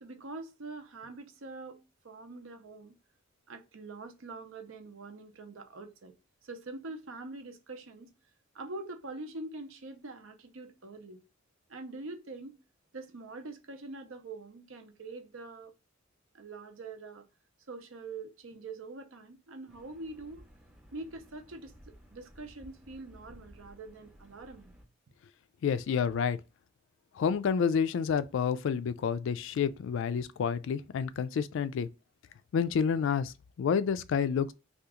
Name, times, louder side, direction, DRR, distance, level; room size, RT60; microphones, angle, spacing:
voice 1, 0.0-3.0 3.5-6.1 6.4-8.1 8.5-11.2 11.7-12.6 12.9-15.7 16.3-17.2 17.7-20.4 20.9-21.8 22.1-24.8, right 3 dB, 75° right, 0.7 m, -44 dB
sound 1, 19.7-24.9, equal, 5° right, 0.5 m, -56 dB
voice 2, 25.6-26.4 27.2-31.9 32.5-34.5, left 7 dB, 65° left, 0.3 m, -29 dB
2.8 x 2.4 x 3.5 m
head